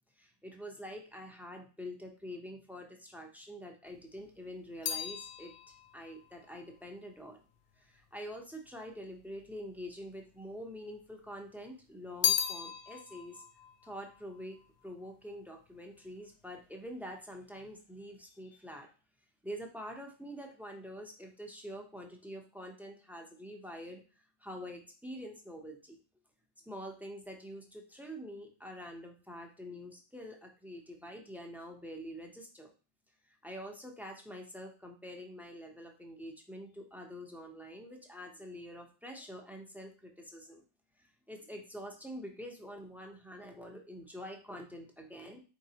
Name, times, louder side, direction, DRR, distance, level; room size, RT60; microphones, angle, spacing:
voice 1, 0.2-7.4 7.8-13.4 13.8-14.6 14.8-18.9 19.4-24.0 24.4-26.0 26.7-32.7 33.4-40.6 41.3-45.4, equal, ahead, 2 dB, 0.5 m, -46 dB
sound 1, 3.9-8.3 9.1-9.9 10.2-11.3 11.6-15.2 15.4-16.0, left 8 dB, 70° left, 0.8 m, -37 dB
4.6 x 3.9 x 2.8 m, 0.35 s
omnidirectional pair, 1.2 m